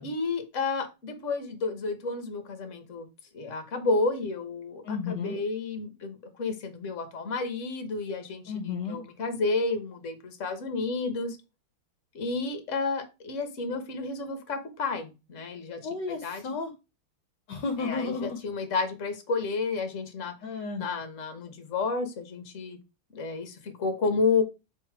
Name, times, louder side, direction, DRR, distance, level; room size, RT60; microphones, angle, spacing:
voice 1, 0.0-3.1 3.3-11.4 12.1-15.8 16.2-16.4 17.8-20.3 20.8-22.8 23.1-24.4, left 4 dB, 40° left, 8 dB, 1.5 m, -31 dB
voice 2, 4.8-5.4 8.5-9.0 15.8-16.7 17.5-18.4 20.4-20.9, left 4 dB, 65° left, 5 dB, 1.4 m, -33 dB
7.1 x 3.7 x 4.7 m, 0.27 s
omnidirectional pair, 2.2 m